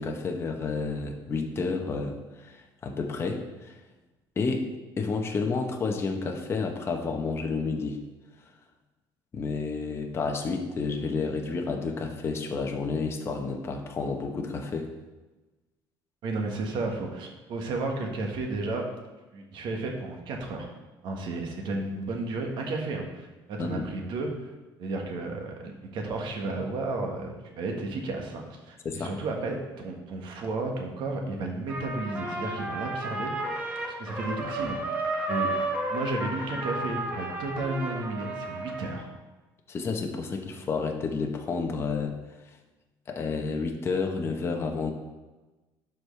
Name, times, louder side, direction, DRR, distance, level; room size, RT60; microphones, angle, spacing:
voice 1, 0.0-3.7 4.4-4.7 5.0-8.0 9.3-14.9 23.6-23.9 28.8-29.1 39.7-42.2 43.1-44.9, left 4 dB, 30° left, 3 dB, 0.9 m, -30 dB
voice 2, 16.2-18.8 19.3-20.7 21.0-24.5 24.8-33.5 34.0-34.8 35.3-35.6 35.9-39.1, right 2 dB, 60° right, 2 dB, 1.4 m, -33 dB
Trumpet, 31.7-39.0, right 2 dB, 15° right, 1.3 m, -32 dB
11.5 x 4.7 x 3.3 m, 1.2 s
cardioid pair, 155°, 9 cm